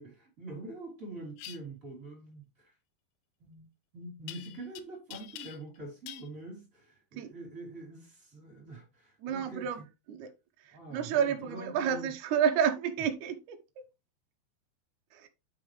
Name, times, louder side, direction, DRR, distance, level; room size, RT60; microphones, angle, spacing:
voice 1, 0.0-2.8 3.4-9.8 10.7-12.1, right 2 dB, 20° right, 3.1 m, -45 dB
sound 1, 1.4-1.6 4.3-4.8 5.1-5.8 6.1-6.3, left 13 dB, 80° left, 2.3 m, -45 dB
voice 2, 9.2-9.8 10.1-10.3 10.6-13.8 15.1-15.3, right 8 dB, 90° right, 1.7 m, -30 dB
9.0 x 5.9 x 3.2 m
omnidirectional pair, 5.1 m